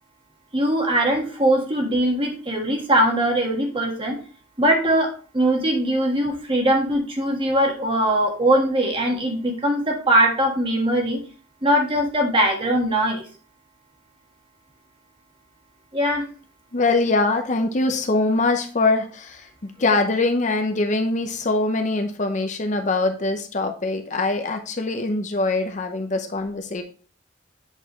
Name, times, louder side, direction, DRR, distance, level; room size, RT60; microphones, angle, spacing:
voice 1, 0.5-4.2 4.6-5.1 5.3-11.2 11.6-13.2 15.9-16.2, right 1 dB, 30° right, 1 dB, 1.4 m, -21 dB
voice 2, 16.7-26.8, left 3 dB, 40° left, 5 dB, 0.6 m, -23 dB
7.9 x 4.6 x 3.0 m, 0.40 s
head